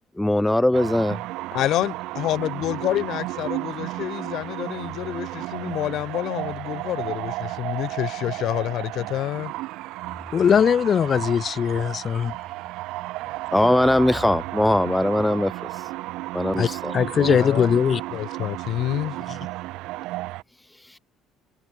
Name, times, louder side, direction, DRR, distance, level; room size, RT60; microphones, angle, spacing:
voice 1, 0.2-1.2 13.5-15.7 16.3-17.0, left 1 dB, 5° left, 1.0 m, -20 dB
sound 1, 0.7-20.4, right 19 dB, 75° right, 4.3 m, -33 dB
voice 2, 1.5-9.5 17.2-17.7 18.1-19.2, left 13 dB, 60° left, 4.7 m, -28 dB
voice 3, 10.3-12.3 16.6-16.7 16.9-18.0, left 7 dB, 35° left, 2.2 m, -20 dB
cardioid pair, 130°, 0 cm